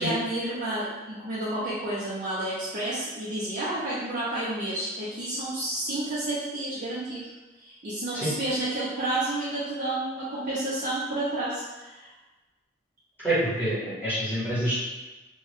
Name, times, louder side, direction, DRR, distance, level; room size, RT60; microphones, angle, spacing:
voice 1, 0.0-7.3 7.6-12.1, right 1 dB, 45° right, -9 dB, 0.6 m, -30 dB
voice 2, 13.2-14.8, right 1 dB, 10° left, -12 dB, 1.2 m, -27 dB
3.1 x 2.3 x 3.1 m, 1.2 s
head